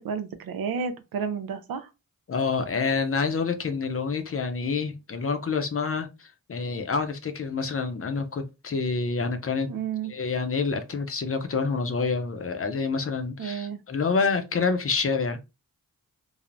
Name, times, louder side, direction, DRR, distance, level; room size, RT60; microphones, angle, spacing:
voice 1, 0.0-1.9 9.7-10.1 13.4-13.8, right 6 dB, 80° right, 0.5 m, -31 dB
voice 2, 2.3-9.7 10.1-15.4, left 4 dB, 40° left, 0.6 m, -27 dB
3.2 x 2.0 x 2.5 m
cardioid pair, 65°, 35 cm